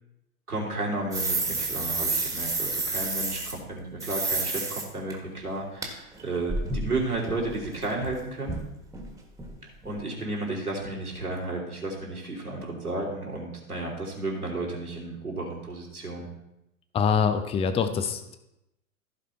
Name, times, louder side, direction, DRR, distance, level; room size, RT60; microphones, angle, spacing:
voice 1, 0.5-8.6 9.8-16.3, right 2 dB, 85° right, -2 dB, 3.2 m, -33 dB
sound 1, 1.1-3.5 4.0-4.8 5.1-5.2 5.8-5.9 6.2-8.2 8.5-8.7 8.9-9.1 9.4-9.5 9.8-9.9, right 3 dB, 5° right, 1.7 m, -30 dB
voice 2, 16.9-18.4, left 6 dB, 15° left, 9 dB, 0.6 m, -25 dB
15.0 x 5.1 x 4.3 m, 0.88 s
figure-of-eight pair, 95°, 44 cm